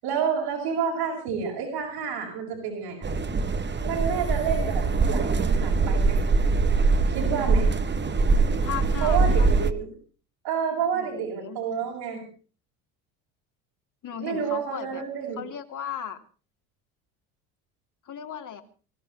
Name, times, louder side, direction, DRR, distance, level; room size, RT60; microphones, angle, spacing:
voice 1, 0.0-3.1 3.8-6.2 7.1-7.7 9.0-9.9 10.4-12.3 14.2-15.4, right 7 dB, 75° right, -3 dB, 6.8 m, -29 dB
sound 1, 3.0-9.7, right 3 dB, 25° right, 1.4 m, -23 dB
voice 2, 8.5-9.5 10.9-11.6 14.0-15.0 15.4-16.2 18.0-18.6, left 9 dB, 45° left, 6 dB, 2.8 m, -36 dB
23.5 x 13.5 x 4.2 m, 0.39 s
supercardioid pair, 80°, 44 cm